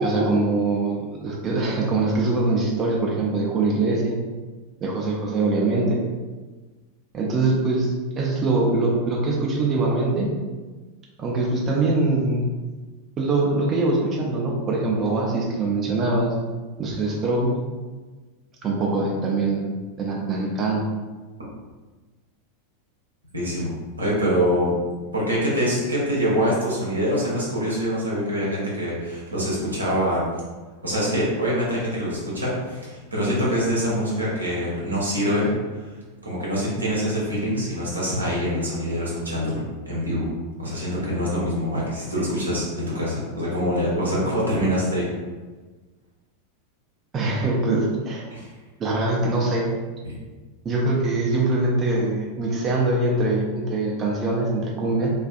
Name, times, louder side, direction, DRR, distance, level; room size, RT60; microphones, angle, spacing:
voice 1, 0.0-4.2 4.8-6.0 7.1-10.3 11.2-12.4 13.2-16.3 16.8-17.6 18.6-19.7 20.0-20.9 47.1-48.2 48.8-49.7 50.6-55.1, right 2 dB, 25° right, -2 dB, 0.5 m, -23 dB
voice 2, 23.3-23.7 24.0-24.7 25.1-30.2 30.8-35.9 36.2-40.3 40.6-45.1 48.3-48.5, equal, 85° right, -6 dB, 0.8 m, -24 dB
2.4 x 2.4 x 2.3 m, 1.3 s
figure-of-eight pair, 90°, 0 cm